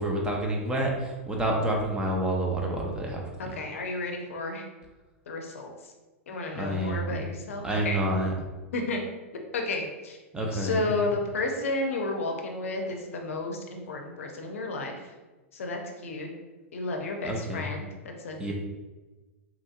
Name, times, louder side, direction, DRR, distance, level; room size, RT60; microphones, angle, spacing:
voice 1, 0.0-3.2 6.6-7.2 7.6-8.3 10.3-10.9 17.2-17.6 18.4-18.5, right 1 dB, 10° right, -1 dB, 0.6 m, -28 dB
voice 2, 3.4-4.7 5.3-5.7 6.3-8.0 8.7-9.0 9.5-10.2 10.5-14.9 15.5-16.3 16.7-18.5, left 2 dB, 75° left, 2 dB, 0.5 m, -32 dB
2.9 x 2.6 x 2.4 m, 1.2 s
hypercardioid pair, 105°, 7 cm